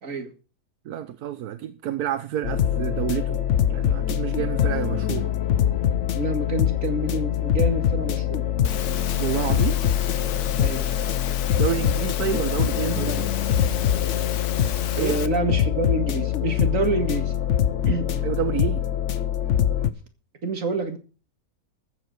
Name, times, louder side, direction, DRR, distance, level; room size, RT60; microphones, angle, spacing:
voice 1, 0.8-3.4 3.7-5.3 9.2-9.8 11.6-13.1 14.9-15.2 18.2-18.9, right 11 dB, 80° right, 1.3 m, -29 dB
sound 1, 2.4-19.9, left 10 dB, 55° left, 1.1 m, -24 dB
voice 2, 6.1-8.5 10.6-10.9 12.8-13.3 14.9-17.3 17.9-18.2 20.4-21.0, right 3 dB, 60° right, 2.5 m, -28 dB
Engine / Mechanisms, 8.6-15.3, left 10 dB, 85° left, 1.4 m, -34 dB
14.0 x 8.1 x 6.4 m
omnidirectional pair, 1.6 m